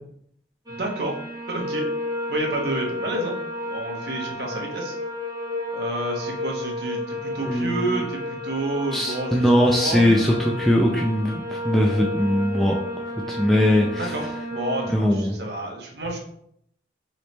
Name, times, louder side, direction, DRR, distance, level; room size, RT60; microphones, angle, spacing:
sound 1, 0.7-14.9, left 1 dB, 20° right, 0.9 m, -32 dB
voice 1, 0.7-1.2 1.5-1.9 2.3-3.4 3.7-4.9 5.7-9.4 9.8-10.3 13.9-16.2, right 2 dB, 60° right, 0 dB, 1.0 m, -29 dB
voice 2, 7.4-8.0 8.9-12.8 13.3-14.1 14.9-15.4, equal, ahead, -1 dB, 0.3 m, -20 dB
3.2 x 3.1 x 4.1 m, 0.70 s
head